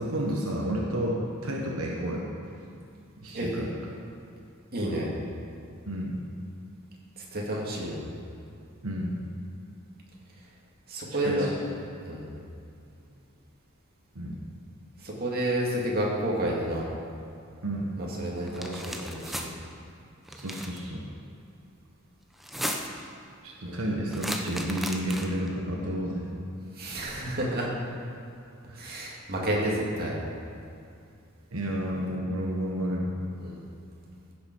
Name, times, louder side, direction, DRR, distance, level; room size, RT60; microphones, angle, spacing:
voice 1, 0.0-2.3 3.2-3.7 5.8-6.2 8.8-9.2 11.2-11.5 14.1-14.3 17.6-17.9 20.3-21.0 23.4-26.3 28.7-28.9 31.5-33.1, equal, 85° right, -2 dB, 1.3 m, -31 dB
voice 2, 4.7-5.1 7.2-8.0 10.9-11.5 12.0-12.3 15.0-16.8 18.0-19.5 23.7-23.8 26.8-27.7 28.8-30.2 33.4-33.6, right 1 dB, 45° right, -3 dB, 2.1 m, -30 dB
sound 1, 18.5-19.5 20.3-20.8 22.3-23.0 24.1-25.5, equal, ahead, 0.7 m, -35 dB
15.5 x 6.9 x 4.7 m, 2.5 s
head